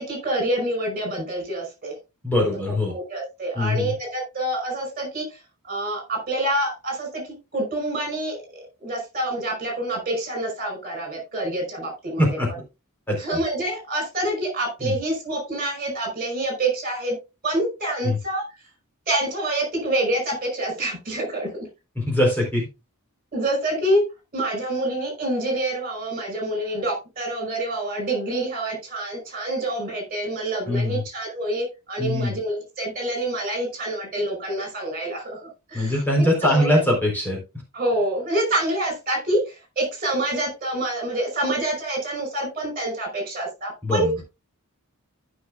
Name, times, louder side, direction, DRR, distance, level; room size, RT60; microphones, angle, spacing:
voice 1, 0.0-2.0 2.9-5.4 5.7-7.2 7.5-8.4 8.8-12.4 13.2-17.2 17.4-18.5 19.1-21.7 23.3-24.0 24.3-36.0 36.4-36.7 37.7-44.1, right 1 dB, 40° right, 3 dB, 5.3 m, -27 dB
voice 2, 2.2-2.9 3.5-3.9 12.2-12.5 13.1-13.4 14.8-14.9 18.0-18.2 22.0-22.7 30.7-31.0 32.0-32.4 35.7-37.4 43.8-44.2, left 1 dB, 10° left, -2 dB, 4.0 m, -22 dB
14.5 x 6.2 x 2.4 m, 0.27 s
head